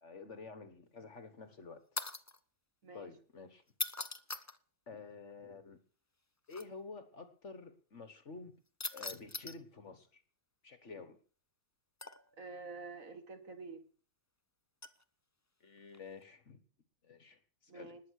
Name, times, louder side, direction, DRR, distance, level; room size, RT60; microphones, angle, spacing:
voice 1, 0.0-1.8 2.9-3.6 4.9-5.8 6.5-8.5 8.9-10.2 10.6-11.2 15.6-16.6 17.0-18.0, left 4 dB, 45° left, 11 dB, 1.6 m, -50 dB
sound 1, 2.0-2.4 3.7-4.6 6.5-6.6 8.8-9.6 12.0-12.4 14.8-15.0 15.9-16.2, left 3 dB, 30° left, 0.3 m, -41 dB
voice 2, 12.4-13.8 17.7-18.0, right 4 dB, 55° right, 9 dB, 2.1 m, -48 dB
20.0 x 8.4 x 6.5 m, 0.42 s
omnidirectional pair, 1.7 m